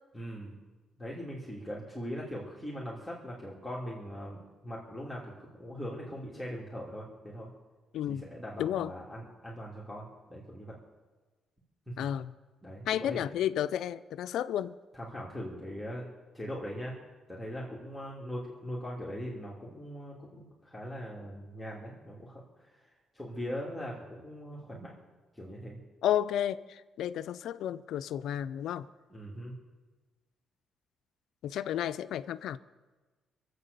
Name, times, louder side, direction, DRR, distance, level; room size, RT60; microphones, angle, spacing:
voice 1, 0.1-0.6 1.0-7.5 8.1-10.8 11.9-12.1 12.6-13.3 14.9-16.1 16.3-17.0 17.3-22.9 23.1-24.9 25.3-25.8 29.1-29.5, equal, 5° left, 2.8 m, -41 dB
voice 2, 8.6-8.9 12.0-12.3 12.9-14.7 26.0-28.9 31.4-32.6, left 11 dB, 80° left, 0.5 m, -32 dB
22.5 x 8.2 x 6.8 m
cardioid pair, 90°, 0 cm